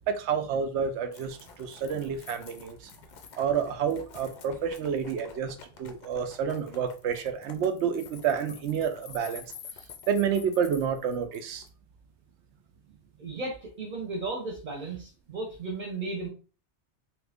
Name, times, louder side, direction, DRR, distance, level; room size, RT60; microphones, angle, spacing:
voice 1, 0.1-2.9 3.4-9.4 10.1-11.7, right 7 dB, 80° right, 0.9 m, -29 dB
sound 1, 1.1-11.7, left 6 dB, 55° left, 0.5 m, -49 dB
voice 2, 13.2-16.3, right 3 dB, 50° right, 0.9 m, -35 dB
2.9 x 2.4 x 3.4 m
omnidirectional pair, 1.1 m